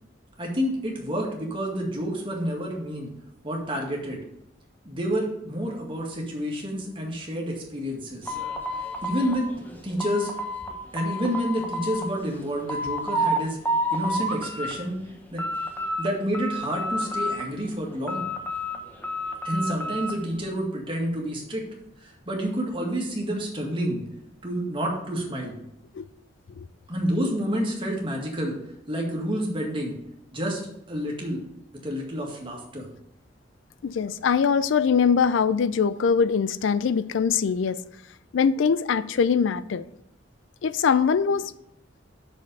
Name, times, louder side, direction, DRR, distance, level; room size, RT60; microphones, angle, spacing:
voice 1, 0.4-3.1 3.4-4.2 4.9-8.4 9.0-9.5 9.8-10.3 10.9-13.6 13.9-15.0 15.3-15.4 16.0-18.3 19.4-21.6 22.0-24.0 24.4-25.5 26.9-28.5 28.9-29.9 30.3-30.6 30.9-31.4 31.8-32.9, equal, 25° right, 2.0 m, -29 dB
sound 1, 8.3-10.7 11.0-12.1 12.4-13.4 13.7-14.7 15.1-16.1 16.3-17.6 18.1-20.2, equal, 10° left, 1.0 m, -29 dB
voice 2, 33.8-37.8 38.3-39.8 40.6-41.5, left 6 dB, 70° left, 0.4 m, -22 dB
6.3 x 5.4 x 6.7 m
head